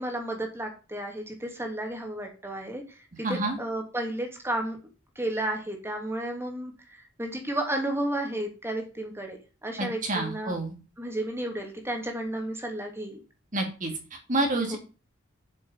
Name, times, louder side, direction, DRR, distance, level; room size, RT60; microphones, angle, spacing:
voice 1, 0.0-3.0 3.3-4.8 5.2-10.6 11.0-13.2 14.7-14.8, right 1 dB, 10° right, 3 dB, 2.8 m, -32 dB
voice 2, 3.2-3.6 9.8-10.7 13.5-14.8, right 2 dB, 40° right, 3 dB, 2.6 m, -28 dB
8.1 x 6.7 x 6.8 m, 0.34 s
head